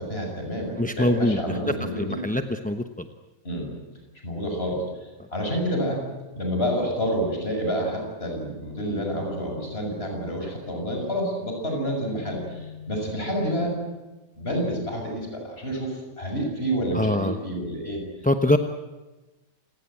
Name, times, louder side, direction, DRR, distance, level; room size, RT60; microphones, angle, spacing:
voice 1, 0.0-2.2 3.4-3.7 4.2-6.0 6.3-13.7 14.4-18.0, equal, 35° left, 1 dB, 7.2 m, -28 dB
voice 2, 0.8-3.1 5.2-5.3 16.9-17.4 18.2-18.6, left 1 dB, 5° left, 7 dB, 0.6 m, -24 dB
28.0 x 19.0 x 8.9 m, 1.1 s
omnidirectional pair, 1.8 m